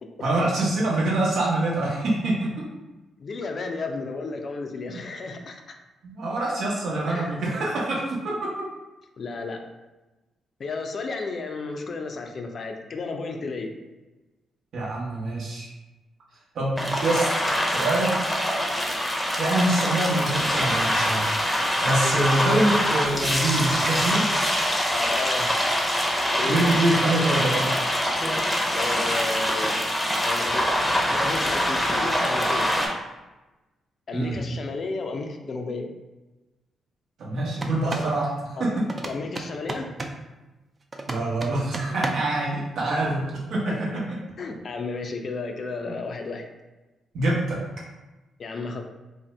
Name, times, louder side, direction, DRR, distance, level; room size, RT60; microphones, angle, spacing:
voice 1, 0.2-2.5 6.0-8.2 14.7-15.7 16.5-18.2 19.4-21.3 21.8-24.3 26.4-27.7 34.1-34.4 37.2-38.3 38.6-38.8 41.1-43.2 43.5-44.2 47.1-47.6, right 2 dB, 70° right, -5 dB, 0.8 m, -25 dB
voice 2, 3.2-5.8 7.1-7.3 9.2-9.6 10.6-13.7 22.0-22.2 24.9-25.5 26.2-26.6 28.7-29.8 30.2-30.8 31.1-32.7 34.1-35.9 37.8-38.1 38.6-38.7 39.0-39.9 43.7-43.8 44.4-46.5 48.4-48.8, left 3 dB, 55° left, 4 dB, 0.4 m, -33 dB
sound 1, 16.8-32.9, equal, 10° left, 0.6 m, -24 dB
sound 2, 37.5-38.1 38.9-40.2 40.9-42.4, right 2 dB, 40° right, 0.3 m, -33 dB
2.6 x 2.0 x 3.2 m, 1.1 s
hypercardioid pair, 45°, 0 cm